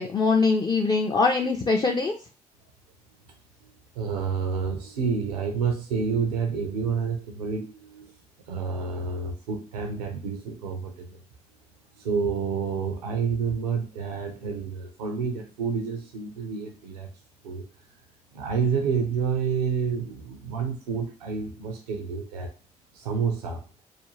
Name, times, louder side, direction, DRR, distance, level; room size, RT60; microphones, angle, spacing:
voice 1, 0.0-2.2, left 4 dB, 20° left, 2 dB, 0.4 m, -22 dB
voice 2, 4.0-8.1 8.5-11.2 12.0-17.1 17.4-17.6 18.3-22.5 22.9-23.6, right 5 dB, 80° right, 3 dB, 0.4 m, -29 dB
2.5 x 2.1 x 3.0 m, 0.33 s
figure-of-eight pair, 40°, 19 cm